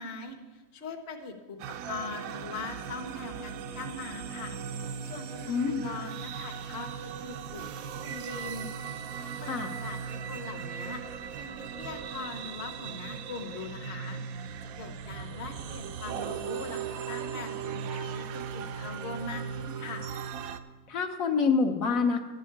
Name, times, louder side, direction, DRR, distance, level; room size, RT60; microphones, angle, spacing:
voice 1, 0.0-14.5 14.8-20.1, left 4 dB, 50° left, 5 dB, 1.1 m, -42 dB
sound 1, 1.6-20.6, right 7 dB, 85° right, 1.1 m, -38 dB
voice 2, 5.5-5.9 9.5-9.7 20.9-22.2, left 5 dB, 75° left, 4 dB, 1.3 m, -26 dB
11.5 x 5.6 x 8.5 m, 1.2 s
omnidirectional pair, 1.5 m